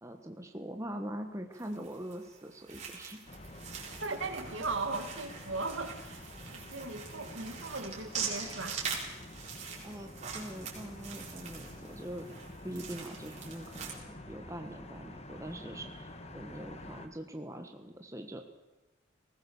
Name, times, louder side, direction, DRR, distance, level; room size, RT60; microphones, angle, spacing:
voice 1, 0.0-3.2 9.8-12.3 12.6-18.4, right 1 dB, 15° right, 5 dB, 1.3 m, -43 dB
sound 1, 1.5-13.9, right 6 dB, 35° right, 4.5 m, -43 dB
sound 2, 3.3-17.1, left 1 dB, 30° left, 1.5 m, -48 dB
voice 2, 4.0-6.2 6.5-8.8, right 3 dB, 70° right, 7 dB, 2.2 m, -37 dB
20.0 x 19.0 x 7.1 m, 1.1 s
head